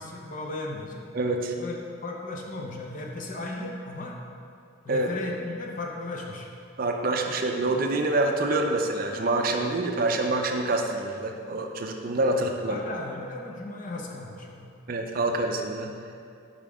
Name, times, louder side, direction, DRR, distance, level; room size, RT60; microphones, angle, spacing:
voice 1, 0.0-1.1 1.6-4.2 4.8-6.5 12.3-14.7, left 2 dB, 40° left, 0 dB, 0.7 m, -36 dB
voice 2, 1.1-1.5 4.9-5.1 6.8-12.8 14.9-15.9, right 2 dB, 45° right, 3 dB, 0.4 m, -26 dB
5.5 x 5.0 x 4.8 m, 2.4 s
head